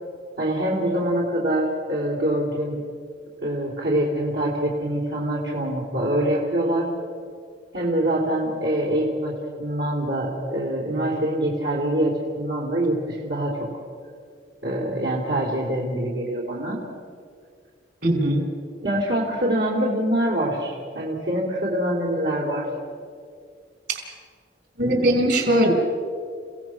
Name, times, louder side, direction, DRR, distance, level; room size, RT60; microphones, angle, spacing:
voice 1, 0.4-2.8 3.4-6.9 7.7-13.5 14.6-16.8 18.8-22.7, right 1 dB, 75° right, -4 dB, 3.5 m, -24 dB
voice 2, 18.0-18.4 23.9-24.1 24.8-25.7, right 1 dB, 60° right, 4 dB, 4.5 m, -20 dB
30.0 x 17.0 x 6.1 m, 2.2 s
head